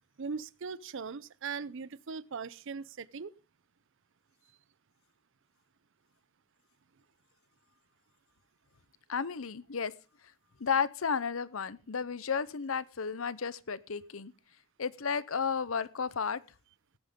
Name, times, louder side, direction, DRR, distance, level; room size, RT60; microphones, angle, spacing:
voice 1, 0.2-3.3, right 5 dB, 60° right, 0.6 m, -39 dB
voice 2, 9.1-9.9 10.6-14.3 14.8-16.4, left 6 dB, 70° left, 0.7 m, -33 dB
18.0 x 8.8 x 3.7 m
head